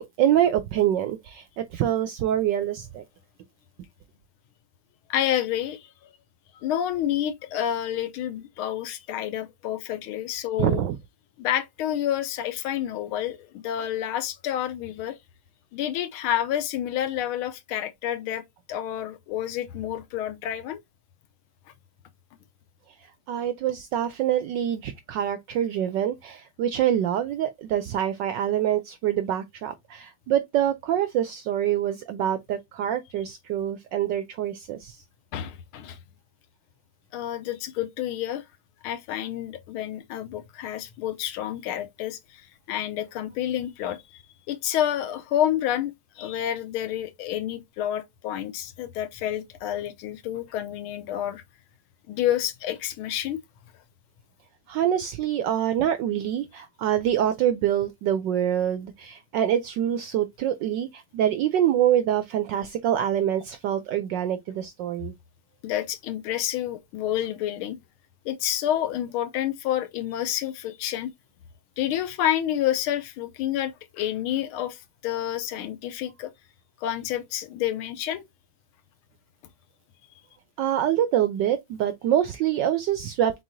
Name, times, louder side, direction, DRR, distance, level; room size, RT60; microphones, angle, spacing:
voice 1, 0.0-3.0 10.6-11.0 23.3-35.0 54.7-65.1 80.6-83.4, right 10 dB, 80° right, 1.0 m, -25 dB
voice 2, 5.1-5.9 6.5-10.8 11.4-15.2 15.7-18.4 18.7-20.8 35.3-36.0 37.1-38.4 38.8-44.0 44.5-51.4 52.1-53.4 65.6-67.8 68.2-71.1 71.8-76.3 76.8-78.2, left 11 dB, 80° left, 1.5 m, -29 dB
4.6 x 3.9 x 2.5 m
omnidirectional pair, 2.4 m